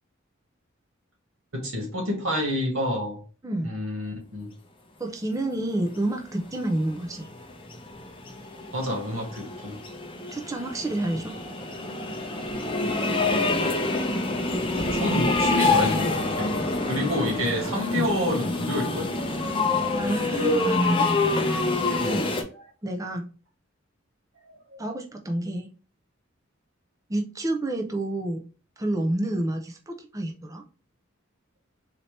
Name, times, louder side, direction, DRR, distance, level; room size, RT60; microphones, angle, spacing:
voice 1, 1.5-3.2 3.6-4.5 8.7-9.8 14.7-16.5 16.8-19.1 22.0-22.3 24.4-24.8, left 1 dB, 90° right, 1 dB, 1.7 m, -29 dB
voice 2, 5.0-7.3 10.3-11.3 17.6-18.1 20.0-21.1 21.9-22.3 22.8-23.3 24.8-25.7 27.1-28.4 28.8-30.6, right 1 dB, 15° right, 2 dB, 0.5 m, -29 dB
sound 1, 6.5-22.4, left 2 dB, 25° left, 0.7 m, -26 dB
4.1 x 2.8 x 3.2 m, 0.36 s
head